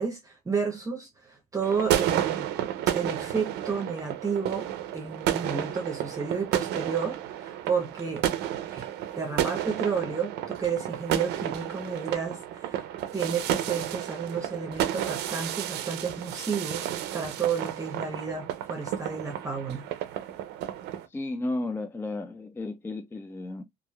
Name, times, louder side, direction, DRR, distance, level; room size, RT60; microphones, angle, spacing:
voice 1, 0.0-2.5 2.9-4.7 4.9-8.2 8.7-8.9 9.2-12.8 13.1-16.9 17.1-19.9, right 5 dB, 20° right, 0.7 m, -31 dB
sound 1, 1.6-21.1, right 11 dB, 85° right, 0.5 m, -31 dB
voice 2, 21.1-23.6, left 2 dB, 15° left, 0.3 m, -33 dB
3.0 x 2.4 x 2.2 m
cardioid pair, 110°, 17 cm